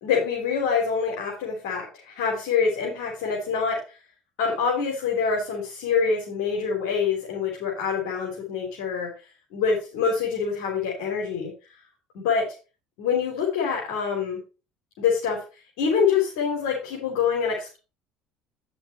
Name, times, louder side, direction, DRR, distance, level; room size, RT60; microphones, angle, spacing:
voice 1, 0.0-3.8 4.4-9.1 9.5-11.5 12.1-12.5 13.0-14.4 15.0-15.4 15.8-17.8, left 6 dB, 80° left, -2 dB, 3.7 m, -25 dB
10.0 x 7.1 x 4.5 m, 0.32 s
supercardioid pair, 90°, 3 cm